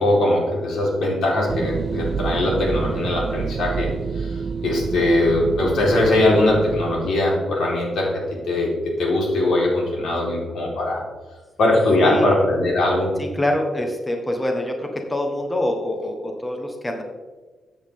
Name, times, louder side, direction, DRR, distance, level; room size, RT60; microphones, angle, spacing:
voice 1, 0.0-8.1 8.5-11.0 11.6-13.1, left 1 dB, 80° left, -3 dB, 4.2 m, -21 dB
sound 1, 1.5-7.1, right 6 dB, 50° right, 0.4 m, -28 dB
voice 2, 13.2-17.0, left 1 dB, 15° left, 2 dB, 1.3 m, -25 dB
14.0 x 8.8 x 3.7 m, 1.3 s
wide cardioid pair, 155°, 0 cm